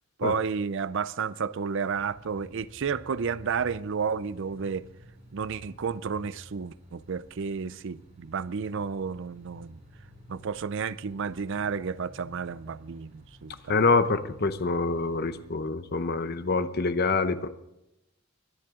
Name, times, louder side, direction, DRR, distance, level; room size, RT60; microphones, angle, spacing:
voice 1, 0.2-4.8 5.3-9.8 10.3-13.7, right 6 dB, 60° right, 0.5 m, -31 dB
sound 1, 1.9-15.5, right 1 dB, 35° right, 6.6 m, -53 dB
voice 2, 13.7-17.5, left 3 dB, 50° left, 0.8 m, -26 dB
23.0 x 10.5 x 3.7 m
head